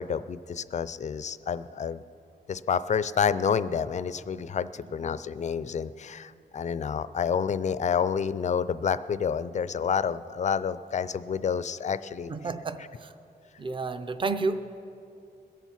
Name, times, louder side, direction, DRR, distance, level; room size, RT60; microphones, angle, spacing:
voice 1, 0.0-2.0 2.5-12.3, left 7 dB, 40° left, 15 dB, 0.4 m, -29 dB
voice 2, 12.3-13.1 13.6-14.8, right 3 dB, 30° right, 10 dB, 0.5 m, -31 dB
21.5 x 7.2 x 5.8 m, 2.6 s
wide cardioid pair, 155°, 18 cm